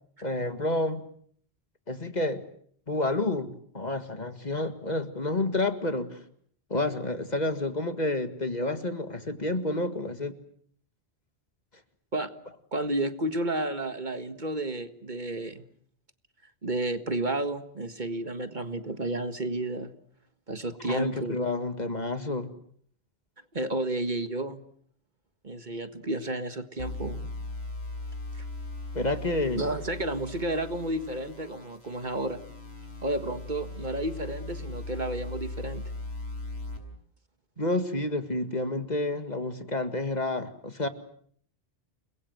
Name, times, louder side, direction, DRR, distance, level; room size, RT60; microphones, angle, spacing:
voice 1, 0.2-1.0 1.9-2.4 2.9-3.5 3.7-6.2 6.7-10.3 20.8-22.5 28.9-29.6 37.6-40.9, left 2 dB, 40° left, 9 dB, 2.0 m, -29 dB
voice 2, 12.7-15.6 16.6-19.9 20.5-21.4 23.5-24.6 25.4-27.3 28.3-28.4 29.5-32.4 33.0-35.8, right 2 dB, 45° right, 9 dB, 1.8 m, -31 dB
sound 1, 26.8-36.8, left 2 dB, 80° left, 6.3 m, -39 dB
30.0 x 21.5 x 7.9 m, 0.63 s
omnidirectional pair, 1.1 m